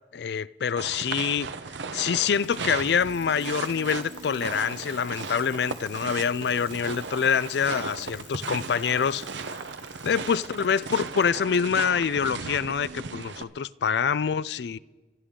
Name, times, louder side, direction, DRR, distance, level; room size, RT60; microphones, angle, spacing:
voice 1, 0.1-1.5 1.9-9.6 10.0-14.8, left 7 dB, 65° left, 0.4 m, -26 dB
sound 1, 0.8-13.4, right 5 dB, 90° right, 0.8 m, -36 dB
Bicycle, 2.0-11.6 12.7-12.8, left 10 dB, 85° left, 1.5 m, -52 dB
25.5 x 12.5 x 3.8 m
head